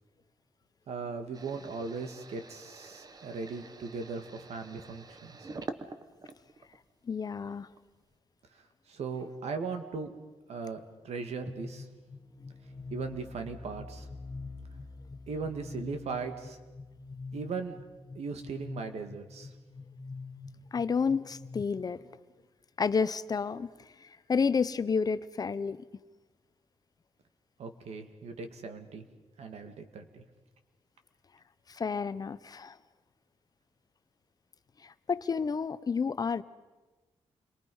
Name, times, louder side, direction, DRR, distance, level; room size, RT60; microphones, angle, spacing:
voice 1, 0.9-5.4 8.9-10.1 10.5-11.9 12.9-14.1 15.3-16.6 17.3-17.8 18.2-19.5 27.6-29.0 29.4-30.2, right 4 dB, 80° right, 7 dB, 2.1 m, -38 dB
sound 1, 1.3-6.9 7.3-8.0, right 3 dB, 35° right, 1.2 m, -46 dB
voice 2, 7.1-7.7 20.7-22.0 22.8-23.7 24.0-25.8 31.7-32.8 34.8-36.4, left 5 dB, 35° left, 14 dB, 0.7 m, -30 dB
sound 2, 11.5-21.6, left 3 dB, 15° left, 1.7 m, -45 dB
29.0 x 23.0 x 5.5 m, 1.2 s
wide cardioid pair, 145°, 11 cm